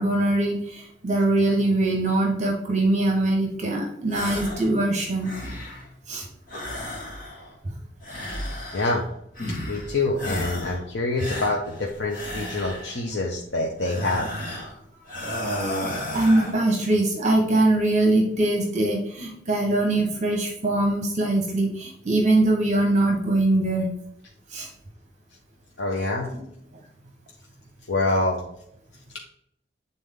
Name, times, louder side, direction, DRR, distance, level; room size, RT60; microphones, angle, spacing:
voice 1, 0.0-5.3 6.1-6.3 15.8-23.9 24.5-24.7 26.3-26.4, right 2 dB, 40° right, 1 dB, 1.2 m, -22 dB
sound 1, 4.1-4.7 5.0-5.9 6.5-7.5 8.0-9.0 9.4-9.9 10.2-10.8 11.2-13.0 13.8-14.7 15.1-16.6, left 1 dB, 50° left, 2.0 m, -33 dB
voice 2, 8.7-9.0 9.7-14.3 25.8-26.3 27.9-28.4, left 2 dB, 75° left, -1 dB, 0.9 m, -26 dB
8.0 x 4.0 x 3.7 m, 0.75 s
head